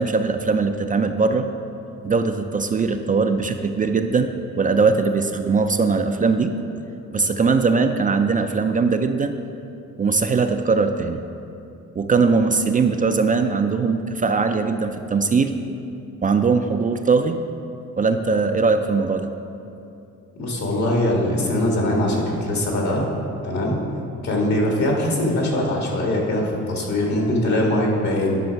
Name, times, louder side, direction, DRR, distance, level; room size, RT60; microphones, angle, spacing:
voice 1, 0.0-1.5 2.0-6.6 7.1-9.4 10.0-11.2 12.0-15.5 16.2-17.4 18.0-19.3, right 4 dB, 25° right, 6 dB, 0.4 m, -20 dB
voice 2, 20.4-23.1 23.4-23.8 24.2-28.4, left 1 dB, 65° left, -1 dB, 2.1 m, -22 dB
10.5 x 6.1 x 4.6 m, 2.7 s
cardioid pair, 90°, 30 cm